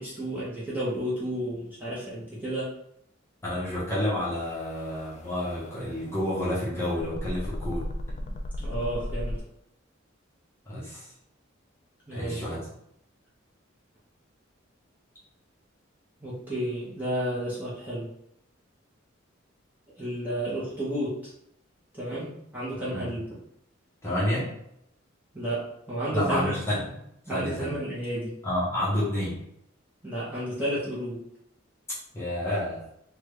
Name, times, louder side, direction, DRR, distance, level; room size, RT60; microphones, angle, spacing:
voice 1, 0.0-2.7 8.2-9.4 12.1-12.4 16.2-18.1 20.0-21.3 21.9-23.2 25.3-26.5 26.8-27.0 27.3-28.3 30.0-31.2, right 1 dB, 10° right, -9 dB, 0.9 m, -32 dB
voice 2, 3.4-7.9 10.7-11.1 12.1-12.7 22.9-23.0 24.0-24.5 26.1-26.8 27.3-27.7 28.4-29.4 32.1-32.8, left 1 dB, 15° left, -8 dB, 1.0 m, -29 dB
sound 1, 4.3-9.4, left 1 dB, 35° left, 0.3 m, -36 dB
3.4 x 2.3 x 3.2 m, 0.75 s
head